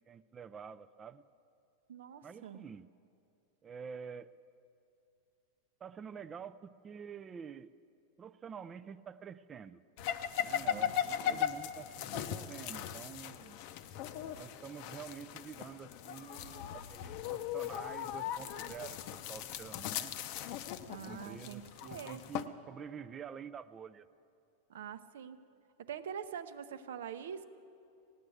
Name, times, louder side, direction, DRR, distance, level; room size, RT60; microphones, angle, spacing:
voice 1, 0.1-1.2 2.2-2.9 3.6-4.3 5.8-7.7 8.2-9.8 10.3-13.6 14.4-20.1 20.9-24.1, right 7 dB, 20° right, 14 dB, 0.3 m, -48 dB
voice 2, 1.9-2.6 10.6-10.9 11.2-11.4 20.9-22.2 24.7-25.4 25.9-27.4, right 8 dB, 85° right, 11 dB, 0.8 m, -44 dB
sound 1, 10.0-22.5, left 10 dB, 45° left, 0.6 m, -38 dB
17.0 x 9.7 x 7.8 m, 2.6 s
supercardioid pair, 155°, 0 cm